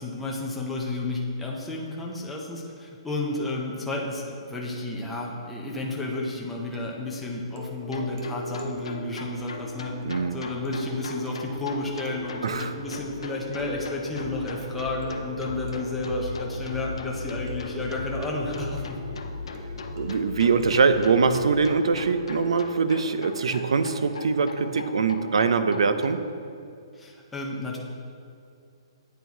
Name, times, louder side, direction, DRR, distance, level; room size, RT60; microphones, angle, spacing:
voice 1, 0.0-10.0 10.3-19.0 26.9-27.8, left 2 dB, 5° left, -3 dB, 0.4 m, -32 dB
sound 1, 5.8-25.0, right 2 dB, 45° right, 0.8 m, -43 dB
sound 2, 7.8-26.1, left 3 dB, 85° left, 0.6 m, -38 dB
voice 2, 10.0-10.4 12.4-12.8 20.0-26.2, right 5 dB, 90° right, 10 dB, 0.4 m, -23 dB
9.0 x 4.5 x 2.7 m, 2.4 s
hypercardioid pair, 175°, 3 cm